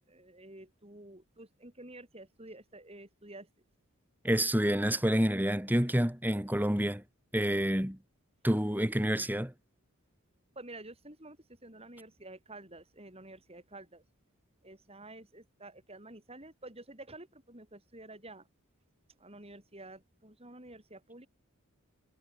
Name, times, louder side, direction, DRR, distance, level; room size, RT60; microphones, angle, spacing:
voice 1, 0.0-3.5 10.6-11.4 11.6-14.0 14.6-18.4 19.2-21.3, right 2 dB, 25° right, 6.3 m, -50 dB
voice 2, 4.2-7.0 7.3-8.0 8.4-9.5, equal, 10° right, 2.9 m, -28 dB
head